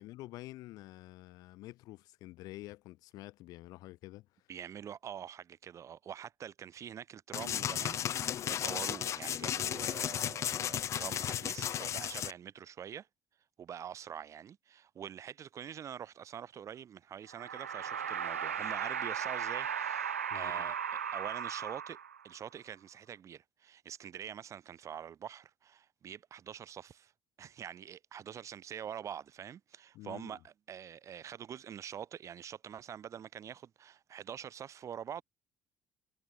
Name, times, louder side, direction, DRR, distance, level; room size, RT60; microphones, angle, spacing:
voice 1, 0.0-4.3 20.3-20.7 29.9-30.4, left 18 dB, 60° left, 1.0 m, -48 dB
voice 2, 4.5-13.1 13.6-20.8 21.1-22.0 22.2-27.1 27.4-35.2, right 9 dB, 45° right, 1.4 m, -45 dB
sound 1, 7.3-12.3, left 10 dB, 45° left, 0.4 m, -34 dB
sound 2, 17.3-22.4, right 8 dB, 85° right, 0.9 m, -36 dB
figure-of-eight pair, 50°, 7 cm